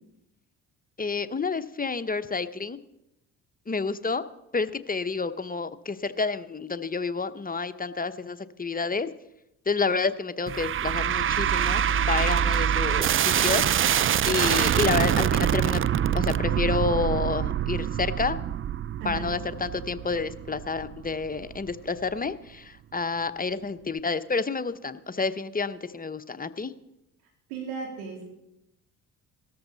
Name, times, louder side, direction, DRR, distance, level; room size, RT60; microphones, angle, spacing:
voice 1, 1.0-2.8 3.7-4.2 4.5-9.1 9.7-14.0 14.3-15.8 16.1-18.4 19.0-26.7, left 4 dB, 20° left, 11 dB, 1.0 m, -29 dB
sound 1, 10.5-21.7, right 9 dB, 30° right, 0.5 m, -25 dB
voice 2, 27.5-28.2, right 5 dB, 80° right, -1 dB, 3.5 m, -35 dB
18.5 x 13.5 x 4.1 m, 0.87 s
hypercardioid pair, 50°, 46 cm